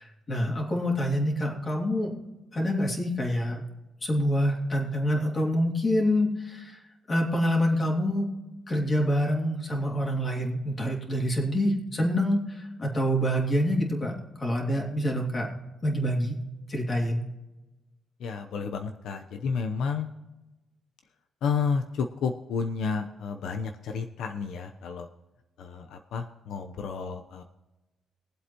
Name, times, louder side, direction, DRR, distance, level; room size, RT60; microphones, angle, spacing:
voice 1, 0.0-2.2 2.5-3.6 4.0-6.8 7.1-8.3 8.7-14.1 14.4-15.5 15.8-16.4 16.7-17.2, equal, 25° left, -1 dB, 2.9 m, -26 dB
voice 2, 18.2-20.1 21.4-25.1 25.6-27.4, left 5 dB, 75° left, 5 dB, 0.8 m, -31 dB
22.0 x 7.9 x 3.0 m, 1.1 s
cardioid pair, 135°, 0 cm